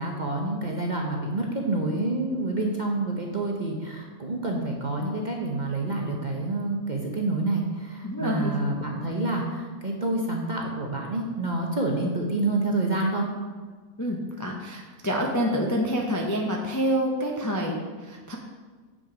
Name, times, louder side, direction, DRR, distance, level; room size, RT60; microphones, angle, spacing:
voice 1, 0.0-13.3, right 2 dB, 35° right, 0 dB, 0.9 m, -28 dB
voice 2, 8.0-8.6 14.0-18.4, equal, 20° left, -1 dB, 0.5 m, -27 dB
7.7 x 6.2 x 5.1 m, 1.4 s
omnidirectional pair, 1.7 m